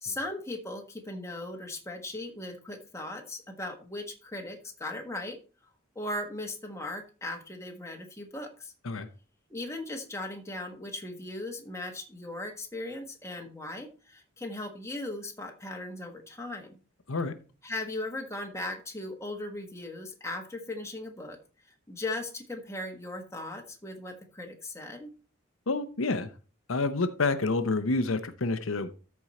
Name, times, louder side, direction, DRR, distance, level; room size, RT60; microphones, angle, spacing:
voice 1, 0.0-5.4 5.9-8.7 9.5-16.8 17.6-21.4 21.7-25.1, left 2 dB, 15° left, 3 dB, 1.5 m, -38 dB
voice 2, 25.7-26.3 26.7-28.9, left 3 dB, 90° left, 9 dB, 0.9 m, -28 dB
13.5 x 4.7 x 4.3 m, 0.35 s
head